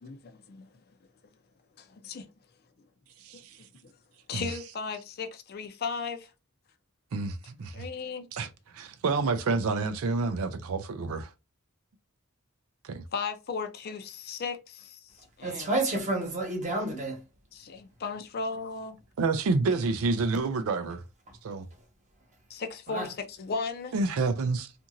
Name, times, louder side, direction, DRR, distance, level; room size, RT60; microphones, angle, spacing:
voice 1, 0.0-0.7 1.8-2.3 4.3-6.3 7.7-8.3 13.1-15.1 15.4-15.7 17.5-19.0 22.5-23.9, left 4 dB, 45° left, 0.5 m, -36 dB
voice 2, 7.1-7.8 8.3-11.3 12.8-13.0 19.2-21.0 21.4-21.6 23.9-24.7, right 3 dB, 70° right, 0.4 m, -28 dB
voice 3, 15.4-17.2 22.9-23.1, right 2 dB, 35° right, 1.1 m, -30 dB
2.8 x 2.5 x 2.4 m
head